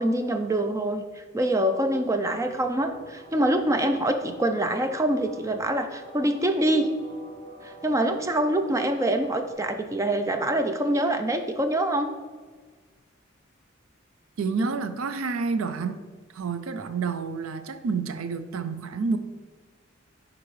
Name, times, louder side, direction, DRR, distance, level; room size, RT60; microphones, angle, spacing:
voice 1, 0.0-6.9 7.6-12.1, right 1 dB, 15° right, 0.4 m, -25 dB
sound 1, 2.4-9.5, right 1 dB, 25° left, 1.8 m, -46 dB
voice 2, 14.4-16.1 16.3-19.2, right 4 dB, 90° right, 0.4 m, -29 dB
10.5 x 3.7 x 3.1 m
head